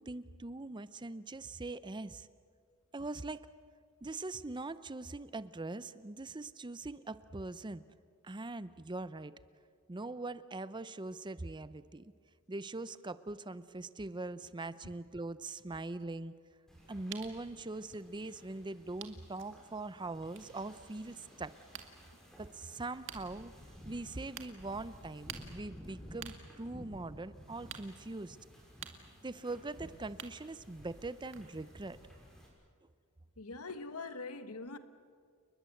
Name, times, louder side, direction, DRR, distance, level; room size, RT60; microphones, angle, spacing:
voice 1, 0.0-2.3 2.9-3.5 4.0-7.8 8.2-9.3 9.9-12.1 12.5-16.3 16.9-21.5 22.4-23.5 23.8-28.4 29.2-32.0, right 2 dB, 20° right, 0.6 m, -42 dB
sound 1, 15.6-18.1 18.7-18.8 19.0-19.7 20.2-20.6 21.1-21.9 22.5-22.6 23.1-23.2 24.0-24.1 24.4-24.5 25.3-30.8 31.1-31.5, right 9 dB, 60° right, 2.1 m, -50 dB
Wind / Ocean, 16.7-32.5, equal, ahead, 6.3 m, -54 dB
voice 2, 33.4-34.8, left 3 dB, 90° left, 1.4 m, -43 dB
30.0 x 21.0 x 7.8 m
head